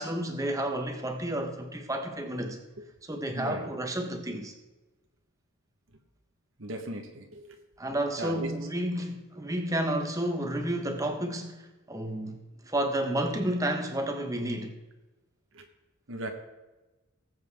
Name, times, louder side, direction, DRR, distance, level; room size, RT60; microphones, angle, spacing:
voice 1, 0.0-2.6 3.1-4.5 7.8-12.4 12.7-14.8, right 1 dB, 15° right, 5 dB, 1.2 m, -31 dB
voice 2, 3.3-3.7 6.6-7.6 7.9-8.6 15.5-15.7 16.1-16.3, right 1 dB, 70° right, 4 dB, 1.3 m, -38 dB
18.5 x 7.9 x 3.6 m, 1.1 s
head